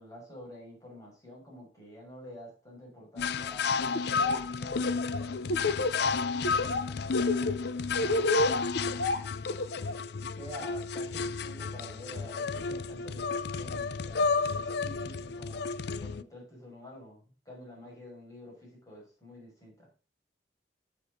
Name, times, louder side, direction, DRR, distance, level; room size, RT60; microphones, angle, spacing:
voice 1, 0.0-5.5 6.0-8.5 8.9-9.3 10.2-19.9, left 1 dB, 20° left, -3 dB, 6.2 m, -48 dB
sound 1, 3.2-16.2, left 5 dB, 65° left, 0.4 m, -32 dB
Laughter, 3.9-4.4 4.7-6.1 6.4-6.8 7.1-10.0, left 2 dB, 80° left, 1.1 m, -29 dB
12.0 x 8.0 x 3.9 m, 0.37 s
head